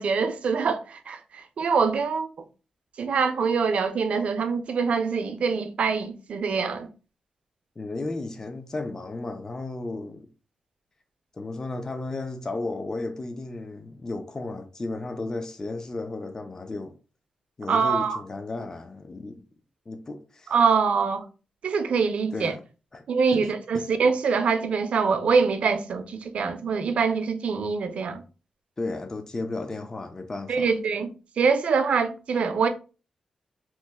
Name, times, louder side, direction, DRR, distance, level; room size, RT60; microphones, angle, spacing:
voice 1, 0.0-2.3 3.0-6.9 17.7-18.2 20.5-21.2 21.6-22.5 23.1-28.2 30.5-31.1 31.4-32.7, right 5 dB, 65° right, 0.4 m, -24 dB
voice 2, 7.8-10.3 11.4-17.0 17.6-19.4 19.9-20.5 22.3-22.6 22.9-23.0 23.4-23.9 28.8-30.7, left 2 dB, 25° left, 0.4 m, -34 dB
3.0 x 2.0 x 3.2 m
wide cardioid pair, 110°, 2 cm